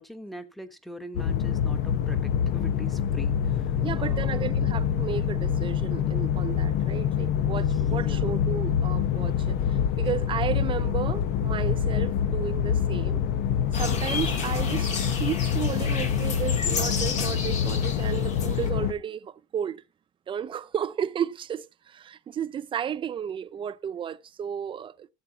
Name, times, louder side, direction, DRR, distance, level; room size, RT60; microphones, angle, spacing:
voice 1, 0.0-4.5 7.5-8.3, left 1 dB, ahead, 1.1 m, -43 dB
sound 1, 1.1-18.9, left 8 dB, 80° left, 1.0 m, -26 dB
voice 2, 3.8-13.2 13.7-19.8 20.3-25.1, right 8 dB, 35° right, 0.6 m, -33 dB
sound 2, 13.7-18.7, left 5 dB, 50° left, 2.2 m, -32 dB
14.5 x 8.0 x 2.9 m
cardioid pair, 130°, 15 cm